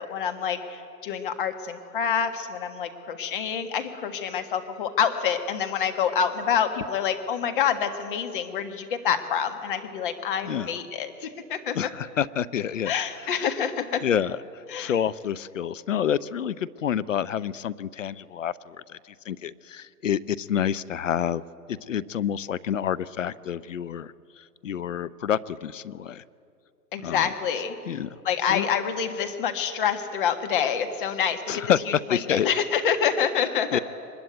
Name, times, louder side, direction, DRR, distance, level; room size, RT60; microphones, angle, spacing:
voice 1, 0.0-11.8 12.8-14.0 14.7-14.9 26.9-27.7 28.2-31.4 32.1-33.8, left 7 dB, 30° left, 7 dB, 1.7 m, -27 dB
voice 2, 11.7-12.9 13.4-13.5 14.0-21.4 21.7-26.2 27.0-27.3 27.9-28.2 28.5-28.7 31.5-32.5 33.7-33.8, left 9 dB, 50° left, 17 dB, 0.7 m, -28 dB
23.5 x 21.0 x 9.2 m, 2.5 s
hypercardioid pair, 155°, 49 cm